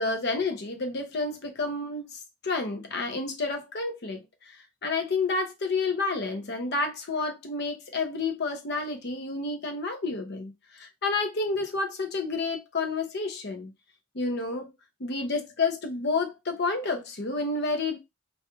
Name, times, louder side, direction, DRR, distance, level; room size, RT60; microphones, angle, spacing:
voice 1, 0.0-4.2 4.8-13.7 14.1-14.7 15.0-18.0, left 3 dB, 50° left, 0.6 m, -30 dB
2.9 x 2.4 x 2.3 m
head